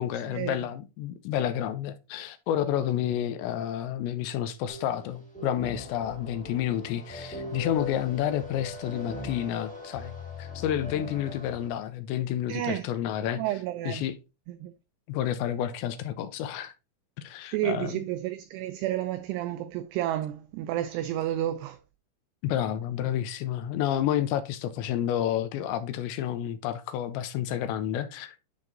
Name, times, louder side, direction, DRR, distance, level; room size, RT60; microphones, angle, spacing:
voice 1, 0.0-13.4 13.9-14.2 15.1-16.7 17.2-18.0 22.4-28.4, left 11 dB, 80° left, 2.8 m, -30 dB
sound 1, 4.7-11.7, left 2 dB, 5° left, 0.7 m, -39 dB
voice 2, 12.5-12.9 13.4-14.0 14.6-14.7 17.5-21.8, right 13 dB, 90° right, 2.3 m, -31 dB
10.5 x 3.6 x 3.8 m
omnidirectional pair, 5.3 m